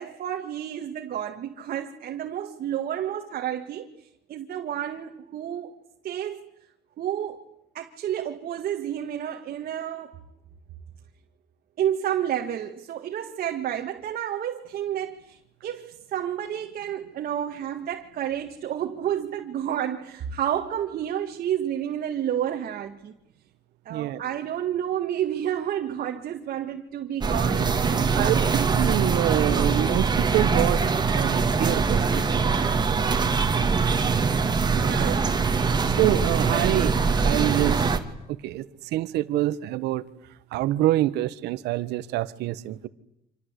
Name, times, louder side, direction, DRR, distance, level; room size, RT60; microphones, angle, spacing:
voice 1, 0.0-3.9 4.3-6.5 7.0-7.4 7.7-10.2 11.8-23.1 23.9-28.5 34.7-35.3, right 10 dB, 60° right, 1.8 m, -30 dB
voice 2, 23.9-24.2 27.4-27.5 28.1-32.3 34.9-35.2 35.9-38.0 38.3-38.7 38.9-40.0 40.5-42.9, right 15 dB, 85° right, 1.3 m, -26 dB
sound 1, 27.2-38.0, right 5 dB, 25° right, 2.4 m, -23 dB
26.5 x 26.5 x 8.2 m
cardioid pair, 110°, 17 cm